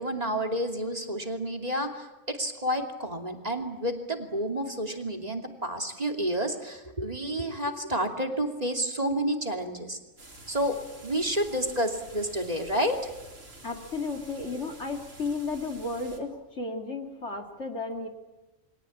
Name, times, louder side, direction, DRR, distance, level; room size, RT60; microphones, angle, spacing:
voice 1, 0.0-10.0 10.5-13.0, equal, 30° right, 3 dB, 2.8 m, -30 dB
sound 1, 10.2-16.2, right 1 dB, 65° right, 4.3 m, -49 dB
voice 2, 13.6-18.1, left 3 dB, 55° left, 3 dB, 2.8 m, -33 dB
29.0 x 23.0 x 8.7 m, 1.1 s
omnidirectional pair, 1.4 m